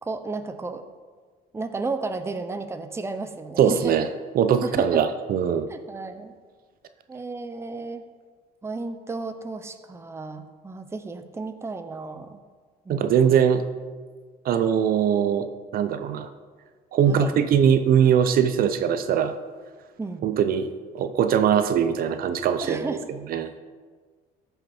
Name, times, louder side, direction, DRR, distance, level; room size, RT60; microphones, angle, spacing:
voice 1, 0.0-0.8 1.5-4.0 4.6-5.0 5.7-6.3 7.1-8.0 8.6-12.4 12.9-13.4 17.1-17.3 20.0-20.2 22.6-23.1, right 3 dB, 15° right, 8 dB, 0.7 m, -33 dB
voice 2, 3.6-4.1 4.3-5.7 12.9-13.6 14.4-16.3 16.9-19.3 20.2-22.9 23.3-23.6, right 8 dB, 60° right, 10 dB, 0.6 m, -21 dB
14.5 x 5.8 x 4.3 m, 1.5 s
cardioid pair, 110°, 17 cm